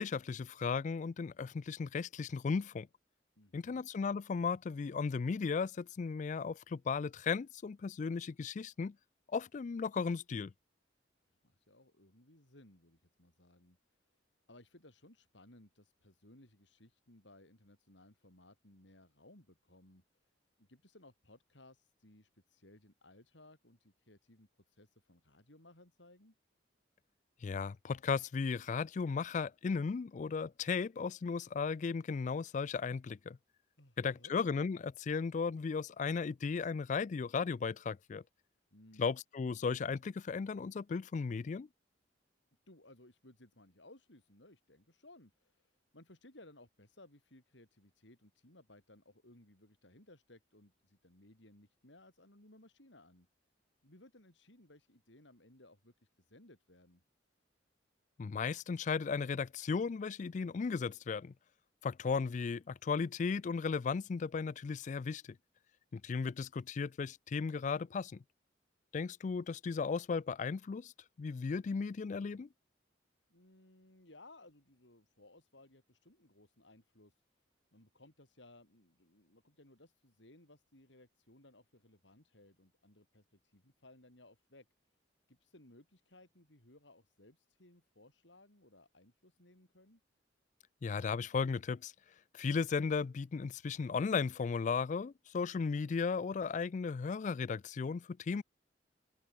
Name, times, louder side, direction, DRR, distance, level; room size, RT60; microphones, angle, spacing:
voice 1, 0.0-2.9 3.5-8.9 9.3-10.5 27.4-33.4 34.0-38.2 39.0-41.7 58.2-61.3 61.8-65.2 65.9-68.2 68.9-70.9 71.2-72.5 90.8-91.9 92.3-98.4, left 5 dB, 40° left, 0.3 m, -35 dB
voice 2, 3.4-3.9 11.3-13.8 14.5-20.0 20.6-26.3 33.8-34.4 38.7-39.1 42.7-53.3 53.8-57.0 73.3-77.1 77.7-84.7 85.3-90.0, left 1 dB, 75° left, 5.8 m, -61 dB
open air
head